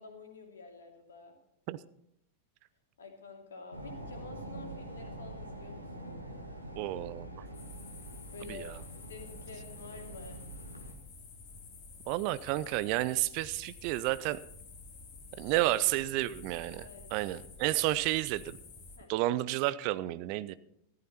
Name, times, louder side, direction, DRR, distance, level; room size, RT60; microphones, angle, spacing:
voice 1, 0.0-1.4 3.0-6.2 8.3-8.7 9.1-10.4 15.6-15.7 16.8-17.2 19.0-19.1, left 4 dB, 65° left, 2 dB, 2.7 m, -49 dB
sound 1, 3.7-10.9, right 1 dB, 85° right, 1.8 m, -45 dB
voice 2, 6.8-7.3 8.4-8.7 12.1-14.4 15.4-16.9 17.1-18.5 19.1-20.5, right 16 dB, 45° right, 17 dB, 0.5 m, -31 dB
sound 2, 7.5-19.0, left 4 dB, 40° left, 2.7 m, -51 dB
14.0 x 13.5 x 4.3 m, 0.74 s
figure-of-eight pair, 90°, 0 cm